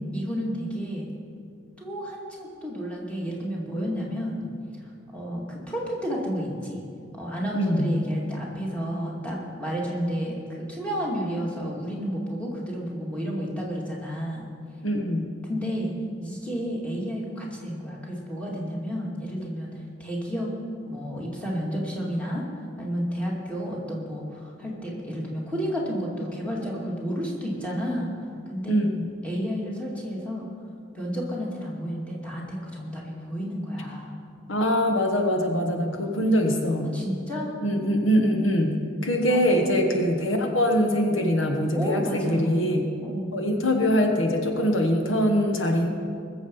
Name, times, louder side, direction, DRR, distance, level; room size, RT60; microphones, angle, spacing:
voice 1, 0.1-1.1 1.8-4.5 5.1-6.8 7.1-14.5 15.4-19.7 20.0-20.5 20.9-22.4 22.8-28.1 28.5-28.9 29.2-30.5 30.9-34.1 36.9-37.5 39.3-39.5 41.7-42.5 43.0-43.3, equal, 5° left, -4 dB, 2.4 m, -31 dB
voice 2, 7.5-7.9 14.8-15.3 28.7-29.0 34.5-37.0 37.6-42.8 43.3-45.9, equal, 75° left, 3 dB, 1.2 m, -23 dB
21.0 x 7.3 x 5.5 m, 2.4 s
head